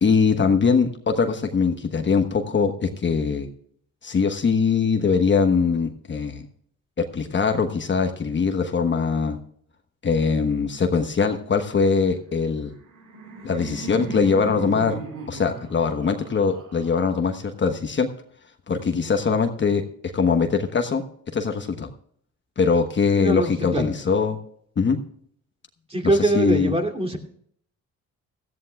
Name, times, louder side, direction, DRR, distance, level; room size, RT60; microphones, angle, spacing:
voice 1, 0.0-3.5 4.0-6.4 7.0-9.4 10.0-12.7 13.4-15.0 15.3-18.1 18.7-19.8 20.1-21.9 22.6-24.4 24.8-25.0 26.0-26.7, left 5 dB, 40° left, 5 dB, 1.2 m, -22 dB
Laughter, 12.6-17.6, right 3 dB, 90° right, 3.9 m, -37 dB
voice 2, 23.2-23.9 25.9-27.2, right 1 dB, 20° right, 2 dB, 2.7 m, -23 dB
17.5 x 14.0 x 2.3 m, 0.64 s
cardioid pair, 90°, 30 cm